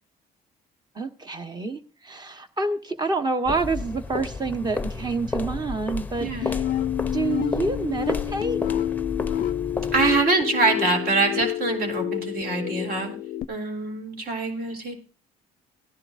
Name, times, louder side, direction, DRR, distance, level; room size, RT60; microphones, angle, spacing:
voice 1, 0.9-6.6 7.1-8.6, right 3 dB, 25° right, 10 dB, 1.3 m, -28 dB
sound 1, 3.5-10.3, left 3 dB, 10° left, 0.7 m, -32 dB
voice 2, 6.2-6.5 9.9-13.1 13.5-14.9, right 3 dB, 65° right, 3 dB, 3.6 m, -24 dB
sound 2, 6.4-13.4, left 12 dB, 55° left, 0.5 m, -28 dB
17.0 x 11.0 x 2.6 m, 0.37 s
cardioid pair, 110°, 17 cm